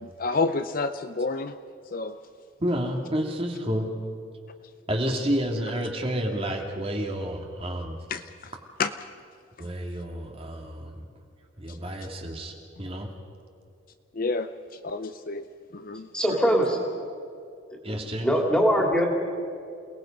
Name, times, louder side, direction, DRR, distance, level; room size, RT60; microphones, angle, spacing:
voice 1, 0.0-1.6 1.9-2.2 8.1-8.2 8.8-8.9 11.7-11.8 14.1-14.5 14.8-15.5 15.7-16.5, left 3 dB, 45° left, 10 dB, 0.6 m, -29 dB
voice 2, 2.6-3.9 4.9-8.0 9.6-11.1 11.6-13.1 17.8-18.3, equal, 30° right, 2 dB, 2.1 m, -30 dB
voice 3, 16.1-16.8 17.9-19.0, equal, 5° left, 0 dB, 3.1 m, -22 dB
28.5 x 19.0 x 5.2 m, 2.4 s
head